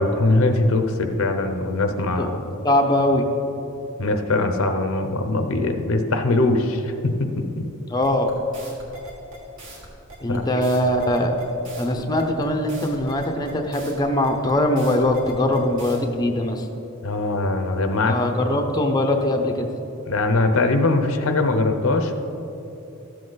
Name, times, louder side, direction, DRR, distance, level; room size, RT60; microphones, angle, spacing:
voice 1, 0.0-2.5 4.0-7.6 10.3-10.4 17.0-18.1 20.1-22.2, left 2 dB, 70° left, 6 dB, 0.7 m, -21 dB
voice 2, 2.6-3.3 7.9-8.3 10.2-11.4 11.8-16.7 18.1-19.7, left 1 dB, 20° left, 3 dB, 0.7 m, -21 dB
sound 1, 8.0-16.0, right 2 dB, 65° right, 2.1 m, -41 dB
13.0 x 7.7 x 4.0 m, 2.9 s
head